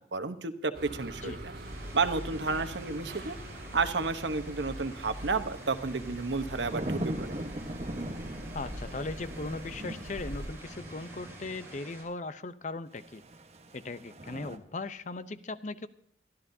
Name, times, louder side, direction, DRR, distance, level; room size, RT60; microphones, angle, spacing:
voice 1, 0.0-1.5 1.9-3.4 3.7-7.4, right 4 dB, 90° right, 9 dB, 1.1 m, -31 dB
sound 1, 0.7-10.5, equal, 55° right, 4.9 m, -43 dB
sound 2, 1.7-12.0, right 2 dB, 15° right, 6.0 m, -50 dB
sound 3, 5.7-11.9 13.0-14.6, right 1 dB, 35° right, 1.2 m, -40 dB
voice 2, 8.5-13.2 13.7-15.9, left 3 dB, 45° left, 13 dB, 0.7 m, -38 dB
23.5 x 12.5 x 2.7 m, 0.65 s
head